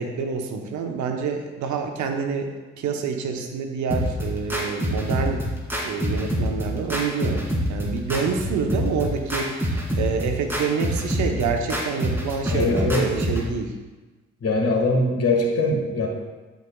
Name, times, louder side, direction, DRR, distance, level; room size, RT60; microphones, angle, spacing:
voice 1, 0.0-2.5 2.8-5.4 5.8-13.7, right 5 dB, 65° right, 4 dB, 0.9 m, -27 dB
sound 1, 3.9-13.5, equal, 5° right, 2.3 m, -26 dB
voice 2, 12.5-13.1 14.4-16.1, left 2 dB, 50° left, 1 dB, 1.8 m, -22 dB
11.0 x 5.1 x 2.3 m, 1.2 s
hypercardioid pair, 45°, 31 cm